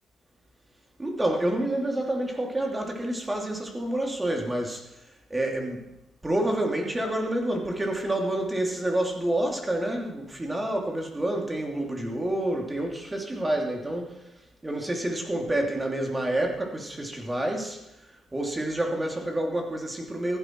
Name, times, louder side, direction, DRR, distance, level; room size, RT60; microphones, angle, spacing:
voice 1, 1.0-4.9 5.3-5.9 6.2-14.2 14.6-17.8 18.1-20.4, right 1 dB, 15° right, 1 dB, 3.0 m, -28 dB
15.0 x 12.0 x 4.7 m, 0.88 s
cardioid pair, 90°, 0 cm